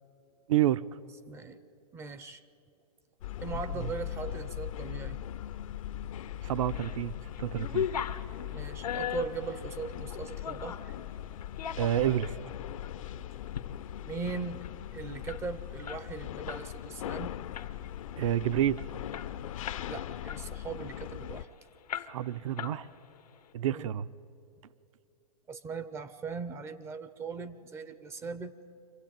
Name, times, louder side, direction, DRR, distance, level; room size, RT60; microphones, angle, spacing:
voice 1, 0.5-0.8 3.8-3.9 6.4-7.1 7.4-7.9 11.8-12.4 18.2-18.8 22.1-22.9 23.5-24.1, right 12 dB, 60° right, 16 dB, 0.7 m, -28 dB
voice 2, 1.3-1.6 1.9-2.4 3.4-5.2 8.5-10.9 14.0-14.6 14.9-17.5 19.9-21.5 23.7-23.9 25.5-28.5, right 4 dB, 15° right, 13 dB, 0.5 m, -39 dB
sound 1, 3.2-21.4, left 11 dB, 60° left, 0.6 m, -40 dB
sound 2, 6.5-7.0 7.3-10.9 11.4-12.4 12.8-13.0 13.4-13.7 14.0-14.1 14.3-16.7 17.0-17.2 17.5-18.0 18.4-18.5 18.8-19.9 20.3-21.4 21.9-22.3 22.6-23.2, left 8 dB, 90° left, 1.1 m, -38 dB
25.0 x 16.0 x 9.0 m, 2.6 s
hypercardioid pair, 145°, 19 cm